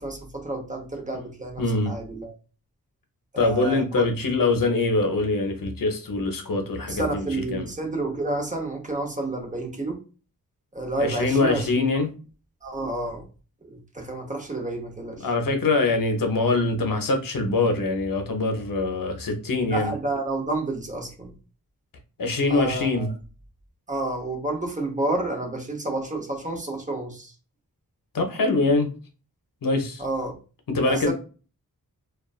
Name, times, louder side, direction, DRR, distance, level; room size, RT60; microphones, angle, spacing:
voice 1, 0.0-2.4 3.3-4.0 6.9-10.0 10.7-11.8 12.6-13.2 13.7-15.3 19.7-21.3 22.5-23.1 23.9-27.3 30.0-30.3 30.8-31.1, right 2 dB, 20° right, 0.8 m, -30 dB
voice 2, 1.6-1.9 3.4-7.7 11.0-12.1 15.2-19.9 22.2-23.1 28.1-28.9 29.6-30.0 30.7-31.1, left 3 dB, 60° left, 0.7 m, -23 dB
2.3 x 2.3 x 2.3 m
cardioid pair, 45°, 37 cm